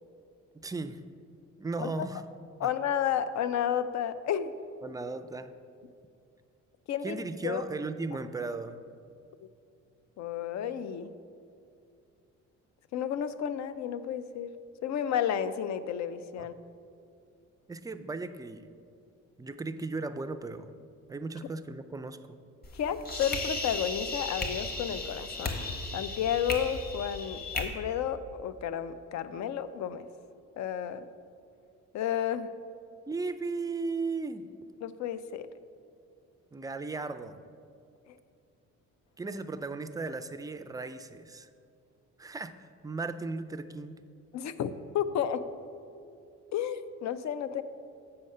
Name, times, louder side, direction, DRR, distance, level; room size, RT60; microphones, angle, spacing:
voice 1, 0.6-1.0 1.6-2.2 2.6-2.7 4.8-5.5 7.0-8.8 16.4-16.5 17.7-18.7 19.4-20.7 21.1-22.4 33.1-34.5 36.5-37.4 39.2-41.5 42.2-44.0, right 3 dB, 15° right, 9 dB, 0.3 m, -36 dB
voice 2, 2.6-4.5 6.9-7.2 7.4-7.6 10.2-11.1 12.9-14.5 14.8-16.5 22.7-25.6 25.9-30.1 30.6-31.1 31.9-32.5 34.8-35.5 44.3-45.4 46.5-47.6, left 9 dB, 65° left, 13 dB, 0.5 m, -32 dB
sound 1, 22.6-27.6, left 2 dB, 30° left, 1.2 m, -35 dB
7.8 x 5.6 x 5.4 m, 2.4 s
cardioid pair, 90°, 30 cm